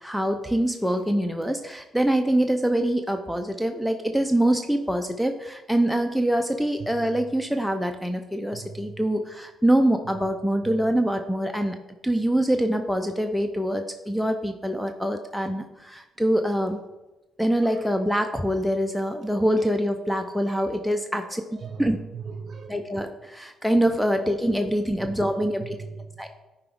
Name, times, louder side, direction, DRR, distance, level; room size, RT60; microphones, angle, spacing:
voice 1, 0.0-16.8 17.4-21.4 21.8-22.0 22.7-25.8 26.2-26.3, right 1 dB, ahead, 7 dB, 0.5 m, -24 dB
voice 2, 8.5-9.0 17.7-17.8 19.6-19.7 20.5-20.7 21.1-21.2 21.6-22.8 25.6-26.2, right 5 dB, 50° right, 5 dB, 1.0 m, -39 dB
10.5 x 4.8 x 3.5 m, 1.1 s
cardioid pair, 90°, 0 cm